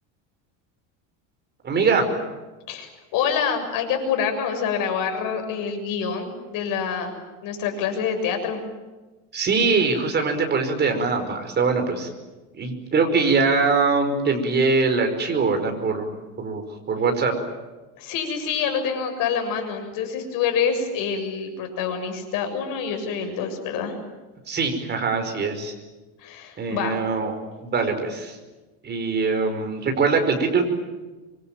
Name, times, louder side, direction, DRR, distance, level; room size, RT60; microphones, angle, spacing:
voice 1, 1.6-2.1 9.3-12.1 12.6-16.1 16.4-17.3 24.5-25.7 26.6-27.3 27.6-28.4 28.8-30.6, right 4 dB, 25° right, 5 dB, 5.3 m, -22 dB
voice 2, 2.7-7.2 7.4-8.6 18.0-24.0 26.2-27.0, left 6 dB, 55° left, 5 dB, 7.2 m, -26 dB
26.0 x 24.0 x 9.1 m, 1.2 s
cardioid pair, 145°, 39 cm